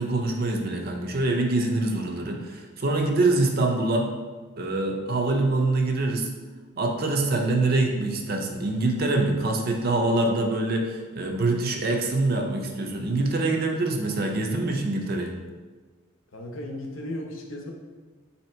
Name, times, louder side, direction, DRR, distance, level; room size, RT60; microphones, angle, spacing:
voice 1, 0.0-4.1 4.6-6.3 6.8-15.3, right 2 dB, 45° right, 2 dB, 0.5 m, -25 dB
voice 2, 16.3-17.7, left 1 dB, 65° left, 1 dB, 0.7 m, -35 dB
4.2 x 2.8 x 4.3 m, 1.4 s
head